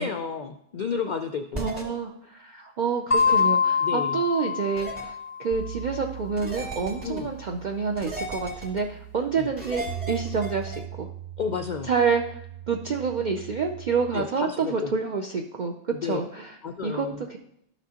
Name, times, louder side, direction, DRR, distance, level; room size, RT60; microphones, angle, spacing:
voice 1, 0.0-1.6 3.8-4.2 7.0-7.3 9.4-9.5 11.4-11.9 14.1-14.9 15.9-16.2 16.6-17.3, left 6 dB, 70° left, 6 dB, 0.4 m, -31 dB
sound 1, 1.5-1.8 3.2-3.4 4.8-5.0 6.4-7.2 8.0-8.8 9.6-10.8, right 1 dB, 30° right, 2.1 m, -35 dB
voice 2, 1.5-5.1 5.4-11.1 11.8-12.4 12.7-16.5 16.8-17.4, right 5 dB, 60° right, 2 dB, 0.5 m, -28 dB
sound 2, 3.1-5.6, left 6 dB, 35° left, 0.7 m, -24 dB
sound 3, 5.5-14.2, right 11 dB, 75° right, 1.0 m, -40 dB
12.5 x 6.0 x 2.8 m, 0.76 s
omnidirectional pair, 1.3 m